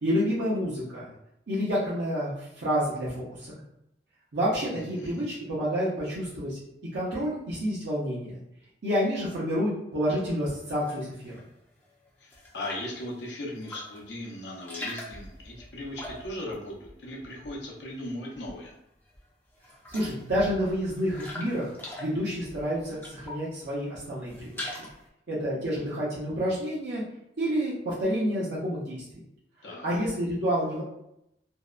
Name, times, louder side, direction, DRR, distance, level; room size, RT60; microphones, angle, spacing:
voice 1, 0.0-1.1 1.5-3.6 4.3-6.6 6.9-8.4 8.8-11.3 19.9-21.7 22.0-24.6 25.3-27.0 27.4-29.0 29.8-30.8, equal, 80° right, -8 dB, 0.7 m, -29 dB
voice 2, 4.7-5.2 12.2-18.8 29.6-29.9, left 1 dB, 90° left, -2 dB, 0.7 m, -38 dB
sound 1, 10.8-11.5 11.8-13.0 13.5-14.1 14.4-17.8 18.1-18.8 19.1-19.2 19.6-23.6 24.0-25.1, left 1 dB, 10° left, 0.4 m, -42 dB
2.6 x 2.1 x 2.4 m, 0.80 s
head